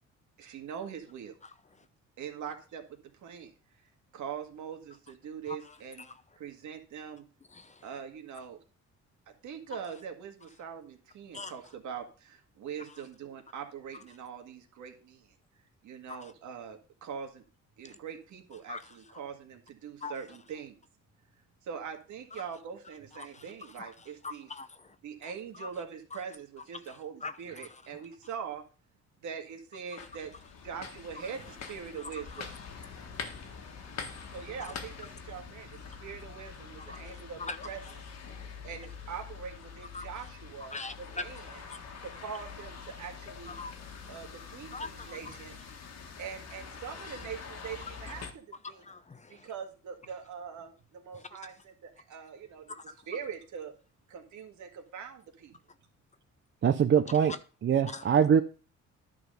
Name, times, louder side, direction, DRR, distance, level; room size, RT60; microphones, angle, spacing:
voice 1, 0.4-1.4 2.2-2.8 3.2-3.5 4.1-6.1 6.4-7.3 7.8-8.6 9.4-15.3 15.8-17.4 17.8-20.8 21.6-24.5 25.0-28.6 29.2-30.3 30.6-32.5 34.3-37.8 38.6-41.6 42.0-43.5 44.1-45.5 46.2-48.8 49.3-52.7 53.1-53.7 54.1-55.6, right 7 dB, 75° right, 1.9 m, -42 dB
voice 2, 5.5-6.2 7.5-7.9 11.3-11.6 16.1-16.3 17.8-18.0 18.7-19.2 20.0-20.1 23.1-25.0 25.2-25.7 26.9-27.8 29.9-30.1 31.2-31.3 32.0-32.4 32.9-34.4 34.6-34.7 36.8-37.6 37.8-37.9 38.3-38.5 39.9-40.1 40.6-42.0 43.5-44.2 44.7-45.4 48.6-49.5 51.1-51.4 52.7-52.9 57.2-57.4 57.9-58.1, left 3 dB, 25° left, 0.7 m, -44 dB
sound 1, 30.0-48.3, left 6 dB, 60° left, 1.7 m, -45 dB
voice 3, 56.6-57.3 57.6-58.4, right 8 dB, 40° right, 0.6 m, -23 dB
11.0 x 4.0 x 6.7 m
cardioid pair, 90°, 30 cm